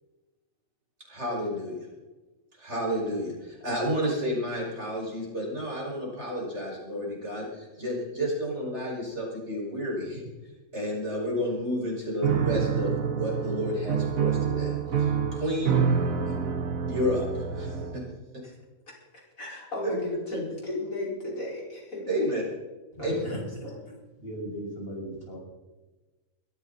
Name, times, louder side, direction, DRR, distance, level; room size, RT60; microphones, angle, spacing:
voice 1, 1.1-1.8 2.6-10.2 10.7-14.7 15.0-15.8 16.3-16.4 16.9-18.0 22.1-22.4 23.0-23.1, equal, 55° right, -3 dB, 6.2 m, -31 dB
Piano, 12.2-18.1, right 7 dB, 85° right, 1.8 m, -27 dB
voice 2, 19.4-22.2 23.0-23.4 23.6-23.8, left 1 dB, 80° left, -3 dB, 5.5 m, -34 dB
voice 3, 22.9-23.7 24.2-25.4, right 1 dB, 45° left, -2 dB, 6.6 m, -37 dB
22.0 x 14.5 x 4.2 m, 1.2 s
omnidirectional pair, 1.4 m